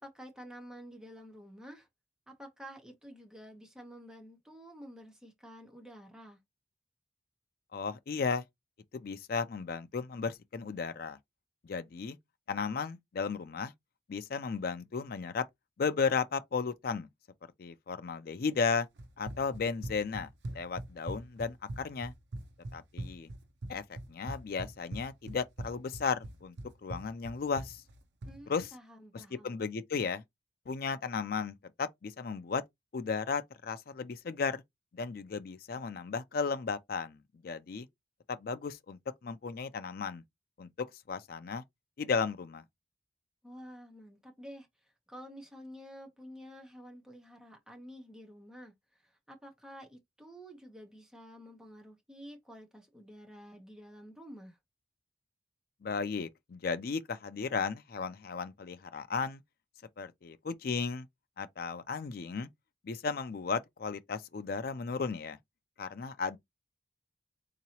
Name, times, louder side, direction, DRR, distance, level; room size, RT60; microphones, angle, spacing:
voice 1, 0.0-1.9 2.3-6.4 28.3-29.6 43.4-54.6, equal, 5° right, 0.9 m, -50 dB
voice 2, 7.7-8.4 8.9-11.2 11.6-12.2 12.5-13.7 14.1-15.4 15.8-17.1 17.6-18.9 19.2-22.1 22.7-23.3 23.7-23.8 24.1-26.5 26.8-27.8 28.5-28.7 29.1-30.2 30.7-32.6 32.9-34.6 34.9-37.9 38.3-40.2 40.6-40.7 41.1-41.6 42.0-42.6 55.8-59.4 60.0-61.1 61.4-62.5 62.8-65.4 65.8-66.4, left 5 dB, 50° left, 0.4 m, -35 dB
Run, 19.0-28.4, right 1 dB, 70° right, 0.6 m, -42 dB
3.7 x 2.9 x 2.9 m
head